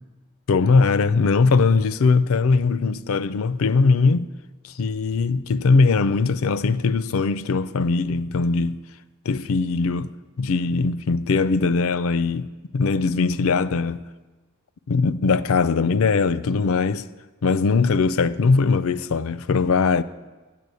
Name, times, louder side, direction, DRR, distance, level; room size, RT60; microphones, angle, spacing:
voice 1, 0.5-4.3 4.6-8.8 9.3-10.1 10.4-14.0 14.9-17.0 17.4-20.0, left 4 dB, 65° left, 0.4 m, -20 dB
9.3 x 6.9 x 8.2 m
head